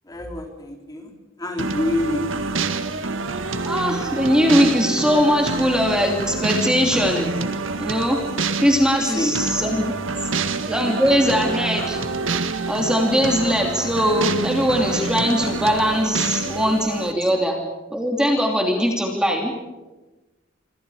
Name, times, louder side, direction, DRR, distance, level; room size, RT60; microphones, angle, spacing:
voice 1, 0.1-2.7 9.1-9.3 17.2-17.3, left 1 dB, 20° left, 3 dB, 3.7 m, -27 dB
sound 1, 1.6-17.1, right 3 dB, 85° right, 1.7 m, -27 dB
voice 2, 3.6-7.3 7.8-8.2 8.6-9.9 10.7-12.0 12.7-17.6 17.9-19.5, equal, 5° right, 1 dB, 3.0 m, -20 dB
26.5 x 26.5 x 5.0 m, 1.1 s
head